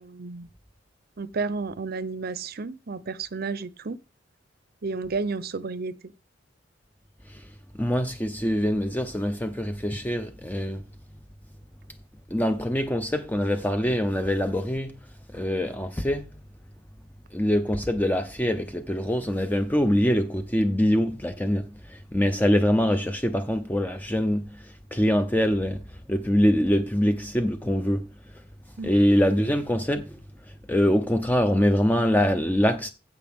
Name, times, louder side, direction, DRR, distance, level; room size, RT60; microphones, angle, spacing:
voice 1, 0.1-0.5 1.2-4.0 4.8-6.0 28.8-28.9, right 4 dB, 55° right, 0.7 m, -31 dB
voice 2, 7.8-10.8 12.3-15.0 15.3-16.3 17.3-25.8 26.1-28.1 28.3-28.4 28.8-30.2 30.5-32.9, equal, 10° left, 0.6 m, -24 dB
15.5 x 5.8 x 3.6 m
head